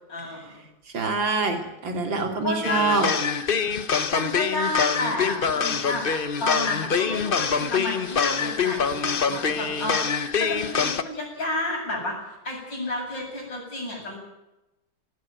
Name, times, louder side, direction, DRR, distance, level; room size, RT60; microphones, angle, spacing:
voice 1, 0.1-0.6 2.4-3.0 4.1-12.2 12.4-14.2, left 1 dB, 70° left, 0 dB, 8.8 m, -31 dB
voice 2, 0.9-3.1, right 3 dB, 85° right, 4 dB, 3.8 m, -25 dB
sound 1, 2.6-11.0, left 6 dB, 35° left, 0.9 m, -25 dB
19.0 x 17.0 x 9.1 m, 0.96 s
omnidirectional pair, 2.0 m